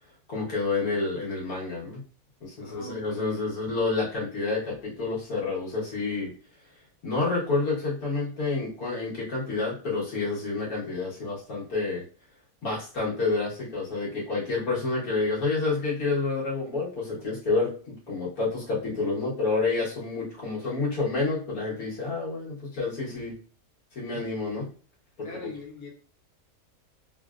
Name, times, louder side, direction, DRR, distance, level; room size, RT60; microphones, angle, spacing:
voice 1, 0.3-2.0 2.4-6.3 7.0-12.0 12.6-23.3 23.9-24.7 25.2-25.3, left 3 dB, 70° left, -6 dB, 1.8 m, -29 dB
voice 2, 2.6-3.4 25.2-25.9, left 3 dB, 90° left, 1 dB, 1.4 m, -41 dB
3.8 x 2.2 x 2.4 m, 0.40 s
omnidirectional pair, 1.6 m